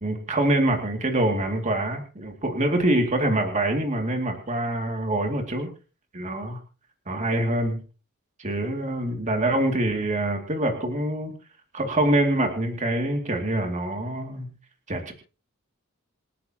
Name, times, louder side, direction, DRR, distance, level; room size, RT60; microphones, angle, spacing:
voice 1, 0.0-5.7 6.1-6.6 7.1-7.8 8.4-11.3 11.7-14.5 14.9-15.1, right 1 dB, 35° right, 3 dB, 2.5 m, -25 dB
27.5 x 10.0 x 2.9 m, 0.36 s
head